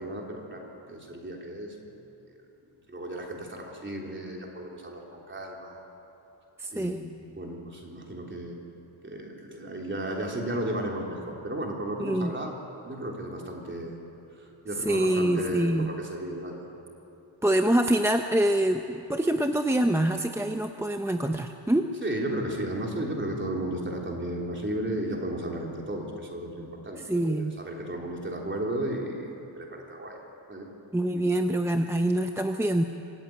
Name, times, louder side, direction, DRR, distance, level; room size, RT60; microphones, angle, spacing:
voice 1, 0.0-1.9 2.9-5.8 6.7-8.7 9.0-12.6 12.8-14.0 14.4-16.8 22.0-30.2 30.5-30.7 31.1-31.3, right 1 dB, 25° right, -1 dB, 3.5 m, -34 dB
voice 2, 6.6-7.0 12.0-12.3 14.9-15.9 17.4-21.9 27.1-27.6 30.9-32.8, right 1 dB, 5° right, 5 dB, 0.5 m, -25 dB
25.5 x 14.5 x 9.4 m, 2.9 s
wide cardioid pair, 145°, 47 cm